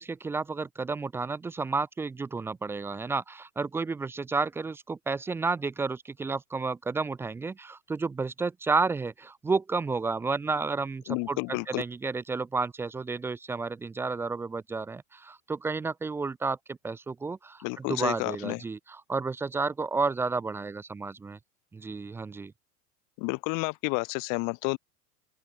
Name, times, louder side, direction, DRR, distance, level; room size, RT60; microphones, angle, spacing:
voice 1, 0.0-21.4 21.7-22.5, right 4 dB, 5° right, 0.3 m, -31 dB
voice 2, 11.1-11.8 17.6-18.6 23.2-24.8, left 32 dB, 45° left, 0.9 m, -30 dB
open air
hypercardioid pair, 95°, 45 cm